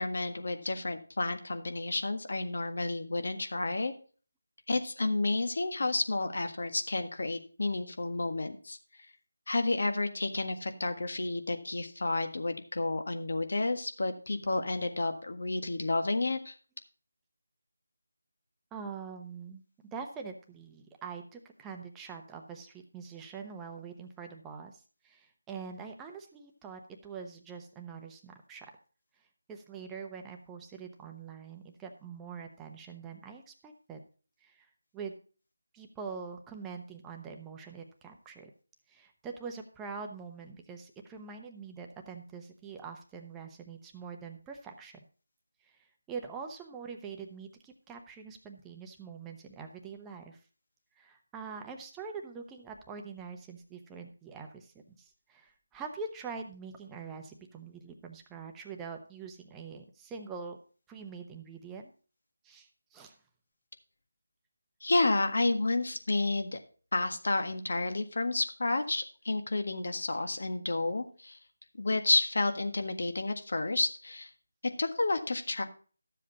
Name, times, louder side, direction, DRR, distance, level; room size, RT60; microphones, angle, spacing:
voice 1, 0.0-3.9 4.7-8.8 9.5-16.5 64.8-66.6 66.9-71.4 71.8-74.3 74.8-75.6, left 2 dB, 65° left, 7 dB, 1.5 m, -31 dB
voice 2, 18.7-28.7 29.2-34.1 34.4-35.1 35.7-38.5 38.9-45.0 45.6-50.4 51.0-60.6 60.9-61.9 62.4-63.2, right 5 dB, 10° right, 3 dB, 0.9 m, -44 dB
13.0 x 7.5 x 4.0 m, 0.39 s
figure-of-eight pair, 165°, 0 cm